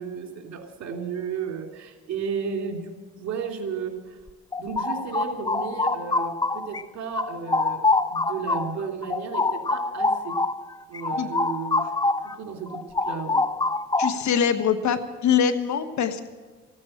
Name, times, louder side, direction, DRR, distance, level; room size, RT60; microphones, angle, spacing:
voice 1, 0.0-4.2 4.6-7.8 8.1-10.4 10.9-11.9 12.2-13.4, right 6 dB, 60° right, 3 dB, 3.0 m, -33 dB
sound 1, 4.3-6.8 7.1-12.3 12.7-14.4, left 3 dB, 15° left, 0.5 m, -25 dB
voice 2, 14.0-16.3, left 7 dB, 70° left, 10 dB, 1.4 m, -23 dB
15.0 x 9.6 x 8.8 m, 1.4 s
cardioid pair, 90°, 30 cm